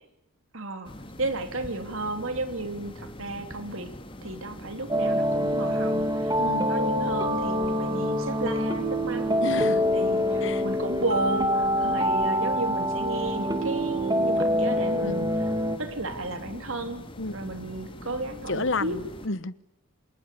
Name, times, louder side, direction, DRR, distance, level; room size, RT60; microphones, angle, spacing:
voice 1, 0.5-3.9 4.2-6.4 6.7-9.4 9.9-15.5 15.8-17.1 17.3-19.0, right 2 dB, 65° right, 8 dB, 3.3 m, -33 dB
sound 1, 0.8-19.3, left 1 dB, 25° left, 2.1 m, -43 dB
sound 2, 4.9-15.8, equal, 15° right, 2.1 m, -25 dB
voice 2, 6.4-6.7 9.4-9.8 10.4-10.6 15.0-15.1 17.2-17.3 18.5-19.5, left 3 dB, 55° left, 17 dB, 1.1 m, -30 dB
26.5 x 20.0 x 8.5 m, 0.82 s
head